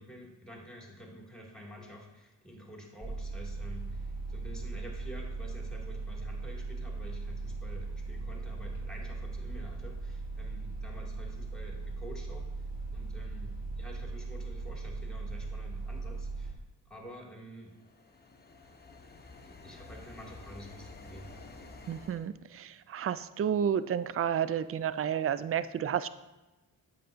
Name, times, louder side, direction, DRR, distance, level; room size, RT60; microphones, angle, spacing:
voice 1, 0.0-16.6 16.9-17.7 19.4-21.3, equal, ahead, -1 dB, 2.1 m, -49 dB
sound 1, 3.0-16.5, right 3 dB, 20° right, 2.0 m, -38 dB
sound 2, 17.6-22.3, left 3 dB, 25° left, 0.8 m, -50 dB
voice 2, 21.9-26.1, right 8 dB, 35° right, 15 dB, 0.4 m, -31 dB
7.6 x 5.8 x 2.5 m, 1.1 s
supercardioid pair, 45°, 43 cm